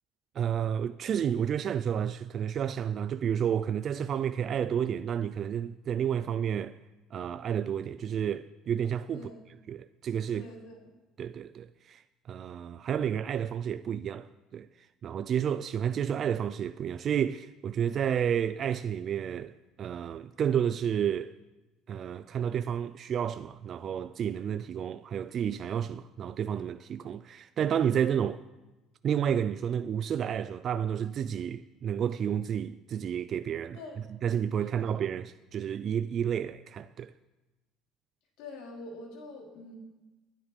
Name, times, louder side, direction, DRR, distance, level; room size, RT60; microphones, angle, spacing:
voice 1, 0.4-6.8 7.1-9.2 9.7-10.5 11.2-12.0 12.3-14.7 15.0-21.3 21.9-28.4 29.0-33.8 34.2-37.1, right 8 dB, 35° right, 0.4 m, -31 dB
voice 2, 10.3-10.9 33.7-34.0 34.7-34.8 38.4-39.8, left 2 dB, 75° left, 4.5 m, -45 dB
21.5 x 10.0 x 5.3 m
cardioid pair, 160°, 0 cm